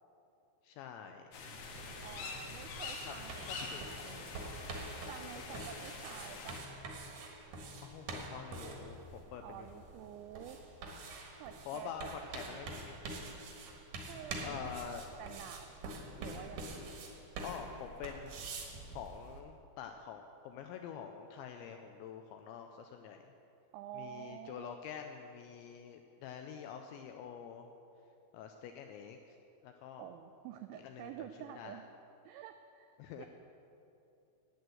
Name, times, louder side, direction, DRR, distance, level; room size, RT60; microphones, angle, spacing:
voice 1, 0.6-1.3 3.1-3.2 3.5-4.3 5.4-5.7 7.8-9.8 11.7-13.0 14.4-15.0 17.4-18.6 18.9-23.3 23.9-27.7 28.3-29.4 29.6-30.1 30.8-31.8 33.0-33.3, left 8 dB, 85° left, 5 dB, 2.6 m, -47 dB
sound 1, 1.3-6.6, left 4 dB, 70° left, 3.1 m, -45 dB
sound 2, 1.7-19.4, right 2 dB, 65° right, 2.4 m, -46 dB
voice 2, 2.0-4.4 5.1-6.6 9.4-10.6 11.4-12.8 14.0-16.9 23.7-24.8 30.0-31.8 32.3-33.3, right 10 dB, 90° right, 8 dB, 2.6 m, -49 dB
11.0 x 9.3 x 7.7 m, 2.8 s
omnidirectional pair, 5.8 m